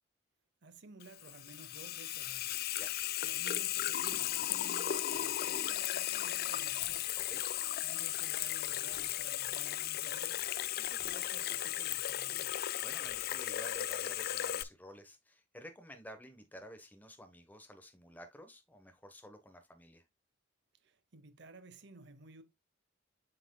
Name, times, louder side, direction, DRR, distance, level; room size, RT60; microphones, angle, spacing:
voice 1, 0.6-2.6 3.2-7.1 7.8-10.5 10.8-12.6 20.8-22.4, right 3 dB, 60° right, 0.8 m, -55 dB
Water tap faucet / Sink (filling or washing), 1.0-14.6, left 13 dB, 50° left, 0.3 m, -36 dB
sound 1, 6.8-7.8 8.4-12.3 12.5-13.5, left 1 dB, 75° left, 2.5 m, -68 dB
voice 2, 12.8-20.0, equal, 10° left, 1.1 m, -52 dB
7.8 x 6.0 x 2.2 m
head